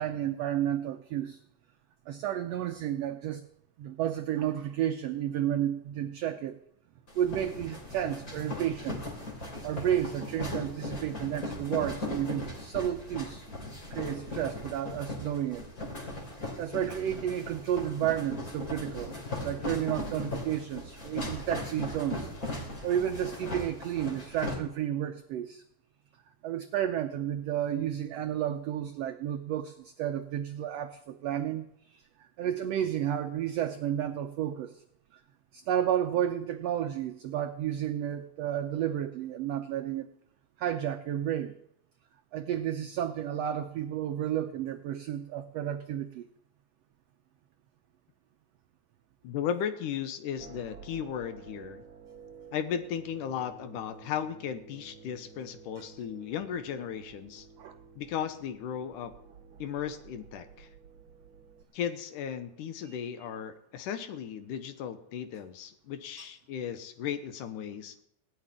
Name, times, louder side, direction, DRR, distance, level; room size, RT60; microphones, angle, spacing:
voice 1, 0.0-1.4 2.1-3.4 3.8-6.6 7.1-9.0 9.5-13.4 13.9-15.6 16.1-16.2 16.6-19.1 19.4-25.6 26.4-34.8 35.1-35.2 35.5-40.1 40.6-41.6 42.3-46.2 57.6-57.7 62.9-63.0 66.2-66.3, right 11 dB, 85° right, 7 dB, 1.4 m, -32 dB
sound 1, 7.1-24.5, left 1 dB, 25° left, 3.5 m, -38 dB
voice 2, 49.2-51.8 52.5-57.5 58.0-59.1 59.6-60.7 61.7-68.0, left 8 dB, 75° left, 10 dB, 2.4 m, -36 dB
sound 2, 50.4-61.6, right 6 dB, 45° right, 2.6 m, -51 dB
17.0 x 6.6 x 9.9 m, 0.74 s
omnidirectional pair, 3.8 m